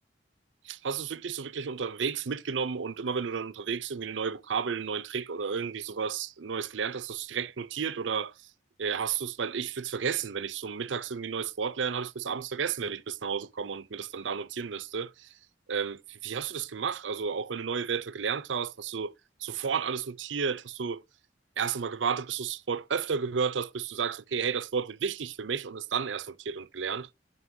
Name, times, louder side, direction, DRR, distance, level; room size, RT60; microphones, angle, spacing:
voice 1, 0.6-8.3 8.8-15.3 15.7-19.1 19.4-21.0 21.6-27.1, right 6 dB, 85° right, 0.6 m, -32 dB
9.8 x 5.2 x 2.7 m
head